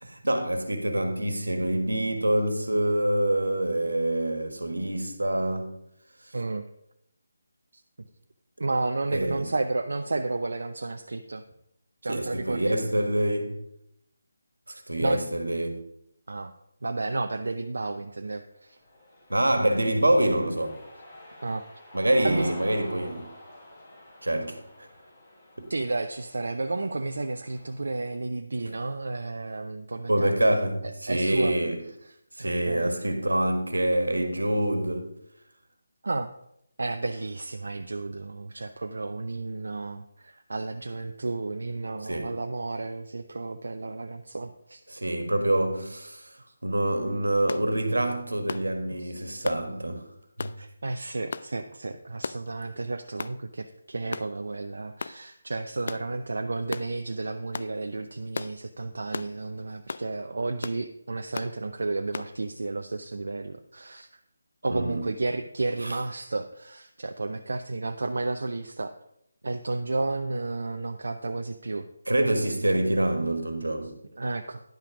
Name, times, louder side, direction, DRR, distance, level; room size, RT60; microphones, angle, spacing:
voice 1, 0.0-5.8 9.1-9.5 12.1-13.6 14.7-15.8 19.3-20.8 21.9-23.3 24.2-24.9 25.6-25.7 28.6-28.7 30.1-31.8 32.4-35.1 42.1-42.4 44.9-46.4 46.6-50.0 50.4-50.5 64.7-65.1 65.8-66.0 72.1-73.9, right 1 dB, 90° right, 1.5 m, -26 dB
voice 2, 6.3-6.6 7.7-7.8 8.6-11.4 12.0-12.7 15.0-15.2 16.3-16.5 16.8-18.8 21.4-21.6 22.2-22.5 25.7-31.5 32.0-32.9 36.0-36.3 36.8-44.8 49.0-49.1 50.6-64.2 64.6-68.9 69.4-71.9 74.1-74.6, right 3 dB, 70° right, 0.5 m, -32 dB
Cheering, 18.7-27.9, left 1 dB, 30° left, 2.8 m, -47 dB
sound 1, 47.5-47.7 48.5-48.7 49.5-49.6 50.4-50.6 51.3-51.5 52.2-52.5 53.2-53.4 54.1-54.3 55.0-55.2 55.9-56.1 56.7-56.9 57.5-57.7 58.3-58.6 59.1-59.3 59.9-60.1 60.6-60.8 61.3-61.5 62.1-62.3, left 4 dB, 55° left, 0.3 m, -35 dB
10.5 x 5.8 x 5.0 m
figure-of-eight pair, 155°, 0 cm